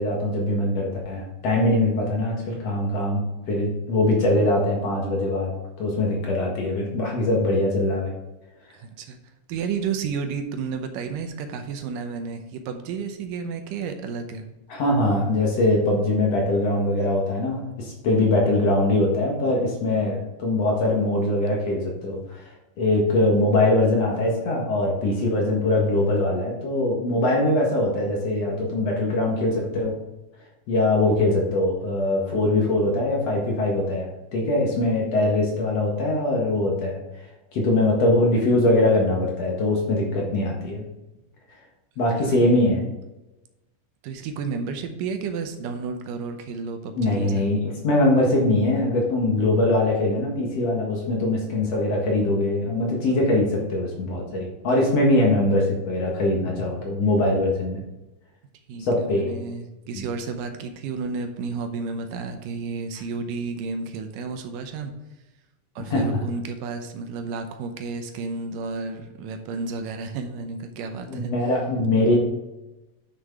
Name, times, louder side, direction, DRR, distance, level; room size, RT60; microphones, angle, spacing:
voice 1, 0.0-5.5 5.8-8.1 14.7-30.0 30.7-37.0 37.5-40.8 42.0-42.8 47.0-47.6 47.8-57.8 58.8-59.4 59.9-60.1 65.9-66.0 71.1-72.2, left 2 dB, 55° left, -1 dB, 2.3 m, -22 dB
voice 2, 8.7-9.2 9.5-14.5 42.2-42.4 44.0-47.4 58.7-64.9 65.8-71.3, right 5 dB, 80° right, 6 dB, 2.4 m, -32 dB
9.5 x 6.4 x 3.6 m, 1.0 s
omnidirectional pair, 3.9 m